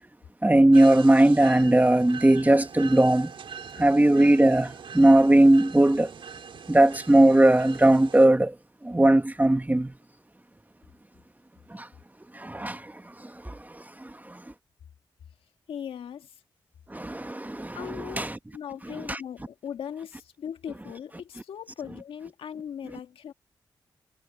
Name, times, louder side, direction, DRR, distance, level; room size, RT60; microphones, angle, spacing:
voice 1, 0.4-3.3 3.8-6.1 6.7-8.5 8.8-9.9 11.7-11.9 12.3-12.9 13.2-14.4 16.9-18.3 19.1-19.2, right 1 dB, 20° right, 1.6 m, -19 dB
sound 1, 0.7-8.3, right 6 dB, 75° right, 3.9 m, -42 dB
voice 2, 15.7-16.4 17.7-23.3, left 8 dB, 85° left, 1.9 m, -39 dB
supercardioid pair, 40°, 9 cm